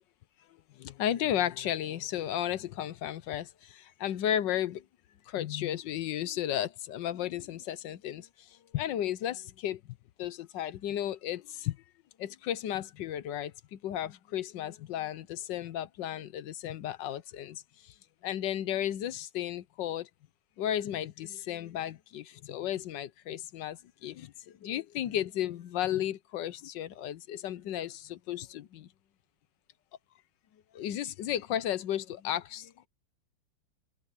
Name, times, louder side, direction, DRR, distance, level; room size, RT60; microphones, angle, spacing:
voice 1, 0.8-4.8 5.3-8.3 8.7-9.8 10.2-11.8 12.2-17.9 18.2-20.1 20.6-28.9 30.7-32.9, left 11 dB, 70° left, 1.4 m, -34 dB
omnidirectional pair, 2.1 m